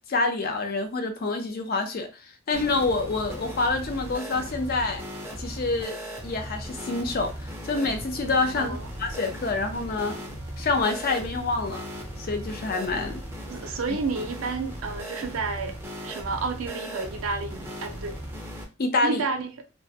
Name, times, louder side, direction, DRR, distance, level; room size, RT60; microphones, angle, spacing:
voice 1, 0.1-2.1 2.5-5.0 5.4-6.0 6.2-7.3 7.6-10.2 10.6-11.8 12.2-13.2 18.8-19.2, left 3 dB, 45° left, 0.5 m, -27 dB
sound 1, 2.5-18.6, equal, 10° right, 0.5 m, -38 dB
sound 2, 8.0-13.3, equal, 80° left, 0.8 m, -48 dB
voice 2, 8.6-8.9 13.5-15.8 16.0-18.2 19.0-19.5, right 4 dB, 85° right, 0.5 m, -31 dB
2.1 x 2.1 x 2.7 m
head